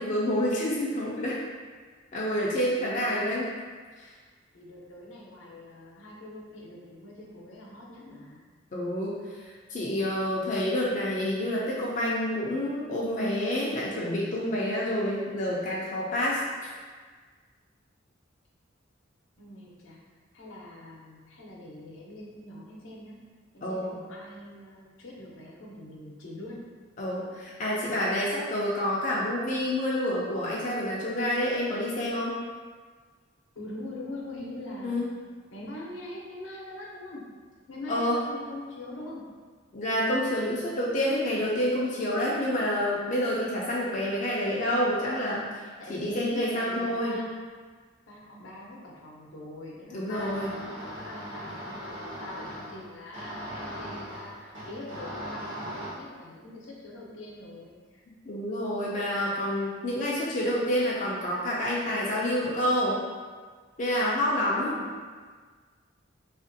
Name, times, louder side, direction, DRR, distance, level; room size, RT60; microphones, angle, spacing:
voice 1, 0.0-1.4 2.1-3.5 4.0-4.1 8.7-9.2 9.7-16.4 23.6-23.9 27.0-32.4 34.8-35.1 37.9-38.2 39.7-45.4 45.9-47.2 49.9-50.5 58.2-63.0 63.8-64.8, left 1 dB, 40° left, -6 dB, 0.4 m, -28 dB
voice 2, 2.8-3.2 4.5-8.4 19.4-20.0 20.3-23.2 23.5-26.6 33.6-35.0 35.5-37.2 37.7-39.2 45.8-47.4 48.1-58.0 64.4-64.9, left 1 dB, 80° left, -4 dB, 0.6 m, -43 dB
sound 1, 50.1-55.9, equal, 75° right, 1.1 m, -39 dB
2.8 x 2.5 x 2.6 m, 1.5 s
head